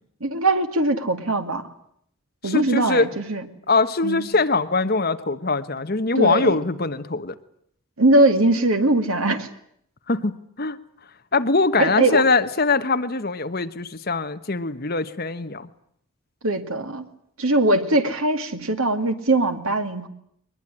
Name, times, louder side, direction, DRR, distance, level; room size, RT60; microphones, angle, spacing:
voice 1, 0.2-1.6 2.4-3.4 4.0-4.3 6.2-6.6 8.0-9.5 11.8-12.2 16.4-17.1 17.4-20.1, right 2 dB, 70° right, 7 dB, 2.2 m, -21 dB
voice 2, 2.4-3.1 3.7-7.3 10.1-10.8 11.3-15.7, left 3 dB, 45° left, 10 dB, 1.2 m, -22 dB
22.0 x 20.5 x 9.9 m, 0.70 s
head